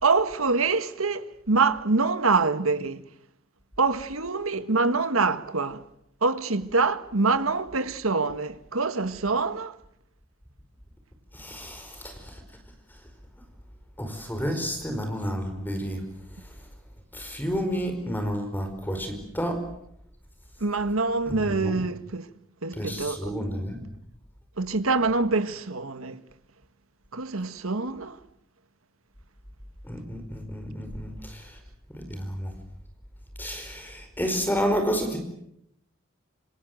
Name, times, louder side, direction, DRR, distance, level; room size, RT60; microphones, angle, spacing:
voice 1, 0.0-3.0 3.8-5.8 6.2-9.7 20.6-22.2 22.6-23.3 24.6-26.2 27.1-28.2, right 3 dB, 90° right, 1.7 m, -25 dB
voice 2, 11.3-12.1 14.0-16.0 17.1-19.6 21.3-21.8 22.7-23.8 29.9-31.4 31.9-32.5 33.4-35.2, equal, 10° left, 4.9 m, -30 dB
27.0 x 26.0 x 7.9 m
head